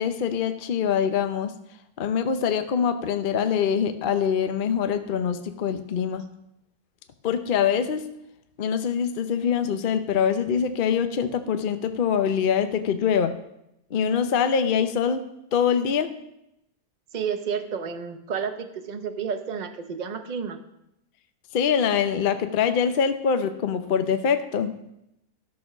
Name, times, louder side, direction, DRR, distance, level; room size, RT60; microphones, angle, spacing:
voice 1, 0.0-1.5 2.0-6.3 7.2-8.0 8.6-13.3 13.9-15.2 15.5-16.1 21.5-24.7, left 7 dB, 50° left, 9 dB, 0.6 m, -24 dB
voice 2, 17.1-20.6, right 6 dB, 35° right, 7 dB, 0.8 m, -31 dB
12.5 x 6.3 x 6.0 m, 0.83 s
omnidirectional pair, 1.7 m